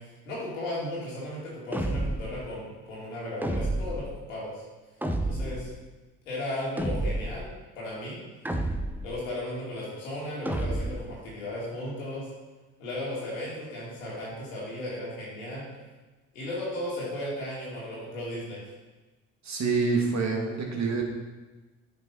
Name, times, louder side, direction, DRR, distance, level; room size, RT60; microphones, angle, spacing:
voice 1, 0.3-4.6 5.2-5.7 6.2-7.5 7.7-8.2 9.0-12.3 12.8-15.6 16.3-18.6, left 1 dB, 90° left, -6 dB, 2.7 m, -35 dB
sound 1, 1.7-2.4 3.4-4.1 5.0-5.6 6.8-7.4 8.4-9.1 10.4-11.1, right 1 dB, 5° right, 0.8 m, -30 dB
voice 2, 19.4-21.2, right 4 dB, 45° right, 1 dB, 1.9 m, -27 dB
9.1 x 5.4 x 4.2 m, 1.2 s
hypercardioid pair, 55°, 37 cm